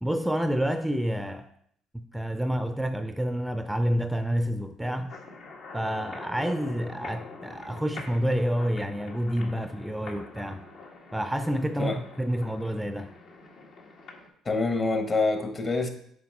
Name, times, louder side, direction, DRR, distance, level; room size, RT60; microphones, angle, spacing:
voice 1, 0.0-1.5 1.9-5.1 5.7-10.6 11.1-13.1, equal, 5° right, 9 dB, 0.5 m, -28 dB
sound 1, 5.1-14.3, left 3 dB, 65° left, 1.4 m, -45 dB
voice 2, 14.4-15.9, left 3 dB, 40° left, 6 dB, 1.3 m, -26 dB
7.0 x 4.9 x 4.3 m, 0.68 s
hypercardioid pair, 65°, 0 cm